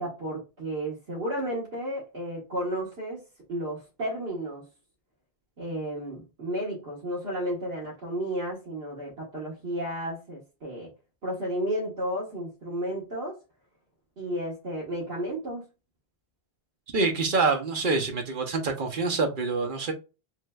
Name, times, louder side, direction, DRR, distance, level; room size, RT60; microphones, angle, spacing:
voice 1, 0.0-3.2 3.5-4.7 5.6-10.9 11.2-13.4 14.2-15.6, right 1 dB, 75° right, 1.4 m, -32 dB
voice 2, 16.9-19.9, right 3 dB, 60° right, 0.8 m, -26 dB
3.2 x 3.1 x 2.2 m
omnidirectional pair, 1.0 m